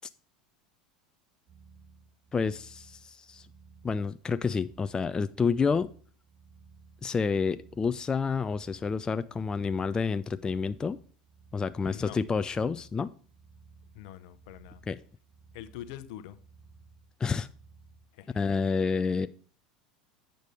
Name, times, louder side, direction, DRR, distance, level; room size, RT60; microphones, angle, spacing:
sound 1, 1.5-18.1, right 4 dB, 25° right, 2.2 m, -57 dB
voice 1, 2.3-3.5 3.8-5.9 7.0-11.0 11.5-13.1 14.9-15.0 17.2-17.5 18.3-19.3, left 5 dB, 20° left, 0.3 m, -29 dB
voice 2, 11.9-12.2 13.9-14.8 15.5-16.4 18.1-18.4, left 12 dB, 65° left, 0.7 m, -44 dB
8.1 x 5.2 x 4.9 m
hypercardioid pair, 80°, 4 cm